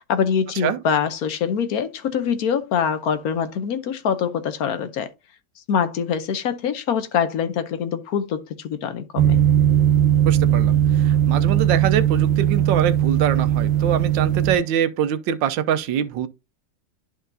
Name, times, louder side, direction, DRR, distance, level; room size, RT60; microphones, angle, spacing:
voice 1, 0.0-5.1 5.7-9.4, left 7 dB, 65° left, 1.1 m, -24 dB
sound 1, 9.2-14.6, right 10 dB, 55° right, 0.7 m, -18 dB
voice 2, 10.2-16.3, right 9 dB, 90° right, 1.4 m, -24 dB
11.0 x 4.5 x 2.6 m
omnidirectional pair, 1.9 m